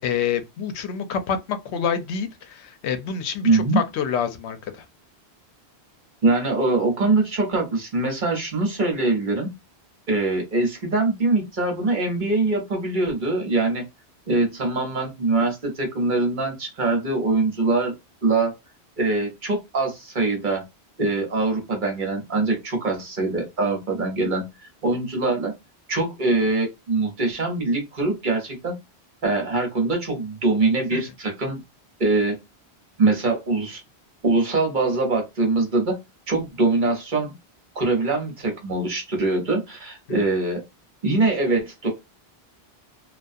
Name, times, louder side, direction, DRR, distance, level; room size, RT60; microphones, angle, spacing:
voice 1, 0.0-4.8 30.9-31.0, left 7 dB, 85° left, 0.9 m, -27 dB
voice 2, 3.4-3.8 6.2-9.5 10.1-13.8 14.3-17.9 18.2-18.5 19.0-20.6 21.0-24.4 24.8-25.5 25.9-28.8 29.2-31.6 32.0-32.4 33.0-33.8 34.2-36.0 36.3-37.3 37.7-40.6 41.0-41.9, right 3 dB, 50° right, 1.1 m, -23 dB
2.4 x 2.3 x 2.5 m
omnidirectional pair, 1.1 m